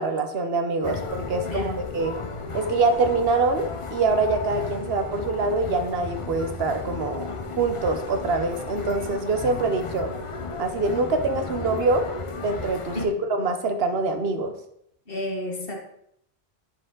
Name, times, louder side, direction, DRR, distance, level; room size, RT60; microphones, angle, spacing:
voice 1, 0.0-2.2 2.5-7.3 7.6-10.1 10.6-12.1 12.4-14.5, right 3 dB, 70° right, 7 dB, 1.0 m, -25 dB
sound 1, 0.8-13.1, left 4 dB, 35° left, 0.6 m, -34 dB
voice 2, 1.4-1.8 12.9-13.2 15.1-15.8, left 1 dB, 60° left, 2 dB, 1.6 m, -32 dB
10.0 x 4.7 x 3.8 m, 0.72 s
omnidirectional pair, 1.1 m